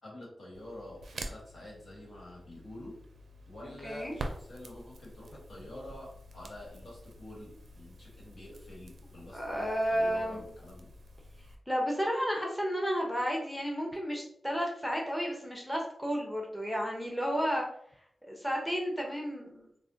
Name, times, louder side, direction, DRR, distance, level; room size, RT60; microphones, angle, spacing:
voice 1, 0.0-2.9 3.5-10.9, left 1 dB, 65° left, -3 dB, 1.3 m, -47 dB
Crackle, 0.5-11.6, right 1 dB, 80° right, 0.4 m, -47 dB
voice 2, 3.6-4.2 9.3-10.4 11.7-17.6 18.2-19.7, equal, ahead, -1 dB, 0.8 m, -32 dB
4.1 x 2.1 x 2.7 m, 0.69 s
cardioid pair, 75°, 0 cm